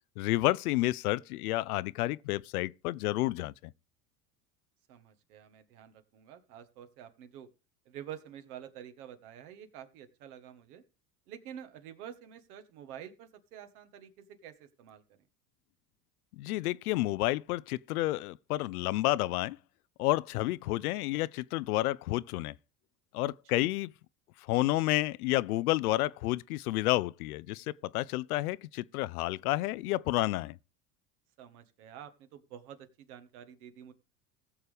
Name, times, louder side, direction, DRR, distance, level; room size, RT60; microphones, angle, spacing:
voice 1, 0.2-3.5 16.4-19.6 20.0-22.5 23.1-23.9 24.5-27.7 27.9-30.6, left 18 dB, 70° left, 0.5 m, -30 dB
voice 2, 4.9-7.5 7.8-10.8 11.3-15.0 23.6-23.7 31.4-33.9, right 9 dB, 65° right, 1.5 m, -48 dB
19.5 x 6.6 x 3.5 m
hypercardioid pair, 75°, 47 cm